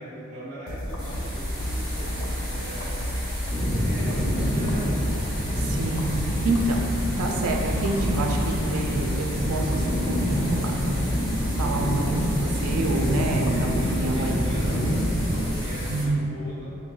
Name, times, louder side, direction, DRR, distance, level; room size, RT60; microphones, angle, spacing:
voice 1, 0.0-2.9 3.8-5.5 13.5-15.0 15.6-16.8, equal, 45° right, -15 dB, 1.2 m, -41 dB
sound 1, 0.7-16.1, equal, 70° left, 0.4 m, -31 dB
sound 2, 1.0-16.0, equal, 15° left, 1.3 m, -37 dB
sound 3, 3.5-15.4, equal, 5° right, 1.0 m, -27 dB
voice 2, 5.7-6.8 7.2-11.0 11.5-14.4 15.9-16.3, right 2 dB, 90° right, 1 dB, 0.4 m, -28 dB
5.5 x 2.1 x 2.3 m, 2.7 s
head